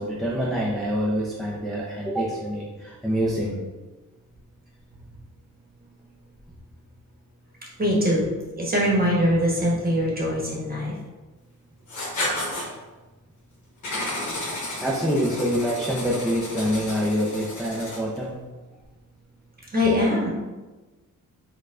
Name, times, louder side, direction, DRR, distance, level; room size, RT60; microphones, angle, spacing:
voice 1, 0.0-3.6 14.8-18.4, equal, ahead, -5 dB, 0.4 m, -26 dB
voice 2, 7.8-8.3 8.6-10.9 19.7-20.3, left 1 dB, 25° right, -4 dB, 1.0 m, -22 dB
Writing, 11.9-12.7 13.8-18.2, left 1 dB, 60° left, 1.1 m, -32 dB
4.3 x 2.3 x 2.4 m, 1.2 s
cardioid pair, 115°, 34 cm